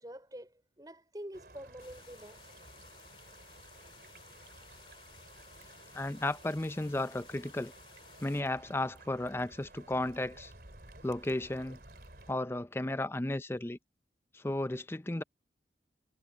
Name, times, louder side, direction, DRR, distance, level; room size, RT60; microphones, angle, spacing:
voice 1, 0.0-2.7, equal, 20° right, 5.2 m, -47 dB
sound 1, 1.3-12.3, right 2 dB, 55° right, 3.3 m, -55 dB
sound 2, 1.8-8.4, left 6 dB, 30° left, 2.5 m, -57 dB
voice 2, 5.9-7.7 8.2-10.5 11.0-11.8 12.3-13.8 14.3-15.2, left 1 dB, 15° left, 0.5 m, -34 dB
head